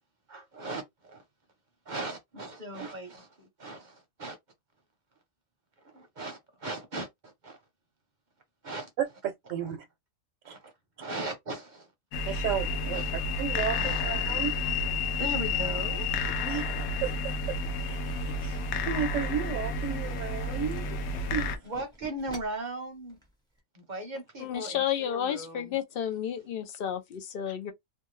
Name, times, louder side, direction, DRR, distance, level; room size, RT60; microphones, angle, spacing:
voice 1, 0.3-1.2 1.9-4.4 5.8-7.6 8.6-8.9 9.6-9.7 10.4-10.7 11.0-11.9 12.9-14.0 15.2-16.1 16.6-16.7 21.6-23.2 23.7-25.8, right 2 dB, 40° right, 0.8 m, -38 dB
sound 1, 12.1-21.6, left 3 dB, 90° left, 1.1 m, -30 dB
voice 2, 12.3-13.0 13.4-14.5 16.4-17.6 17.9-21.0 21.3-21.5, right 8 dB, 70° right, 0.9 m, -34 dB
Tools, 14.1-18.8 19.2-22.7 23.1-23.3 23.6-23.7, equal, 5° left, 0.8 m, -50 dB
voice 3, 24.4-27.7, left 9 dB, 60° left, 0.6 m, -31 dB
2.6 x 2.3 x 3.1 m
omnidirectional pair, 1.4 m